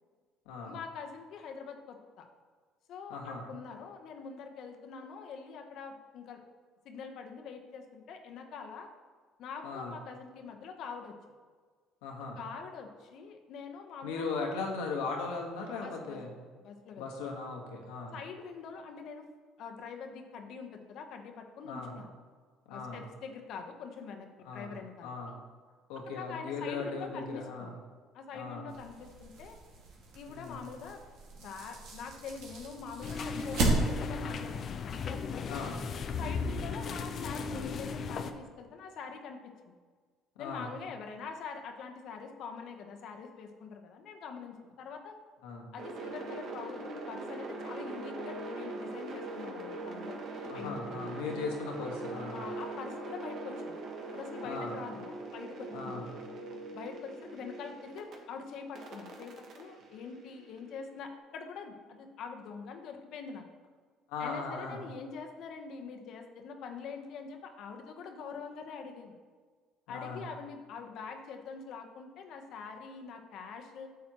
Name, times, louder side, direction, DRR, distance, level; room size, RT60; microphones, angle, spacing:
voice 1, 0.6-2.3 2.9-6.4 6.8-8.9 9.4-11.1 12.3-14.3 15.8-16.2 16.6-17.1 18.1-19.2 19.6-22.1 22.7-25.4 26.1-27.7 28.1-29.6 30.1-31.0 31.4-34.6 34.8-35.6 36.2-39.7 40.4-45.2 45.7-50.2 50.5-51.1 52.3-53.8 54.1-56.1 56.7-63.4 64.2-69.1 69.9-73.9, left 5 dB, 65° left, 4 dB, 1.0 m, -44 dB
voice 2, 3.1-3.4 9.6-9.9 12.0-12.4 14.0-16.3 17.0-18.1 21.6-21.9 22.7-23.0 24.4-24.7 25.0-25.3 25.9-27.7 28.3-28.6 30.3-30.6 35.4-35.8 36.2-36.6 40.4-40.7 45.4-45.7 50.5-52.4 54.4-54.7 55.7-56.0 64.1-64.8 69.9-70.2, left 4 dB, 90° left, 0 dB, 1.5 m, -38 dB
sound 1, 28.7-34.3, right 2 dB, 75° right, 2.0 m, -35 dB
sound 2, 33.0-38.3, left 5 dB, 50° left, 0.6 m, -36 dB
sound 3, 45.8-58.2 58.8-60.9, right 2 dB, 60° right, 1.4 m, -41 dB
8.8 x 7.2 x 3.0 m, 1.5 s
supercardioid pair, 85°, 0 cm